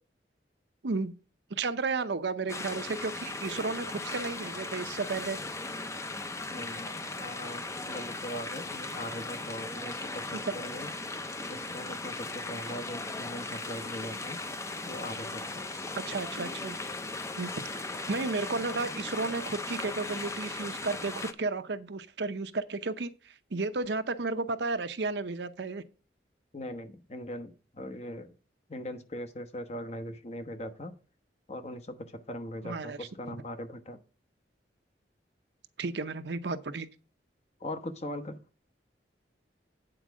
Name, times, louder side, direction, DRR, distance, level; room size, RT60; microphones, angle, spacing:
voice 1, 0.8-1.2 1.5-5.4 10.3-10.5 15.9-16.8 17.4-17.6 18.1-25.8 32.6-33.0 33.3-33.4 35.8-36.9, right 3 dB, 75° right, 0.7 m, -33 dB
sound 1, 2.5-21.3, left 2 dB, 15° left, 0.6 m, -38 dB
voice 2, 6.5-6.9 7.2-10.9 11.5-14.4 14.9-15.7 26.5-28.3 28.7-30.9 31.5-34.0 37.6-38.4, left 1 dB, 40° left, 1.0 m, -40 dB
8.9 x 4.6 x 6.2 m
head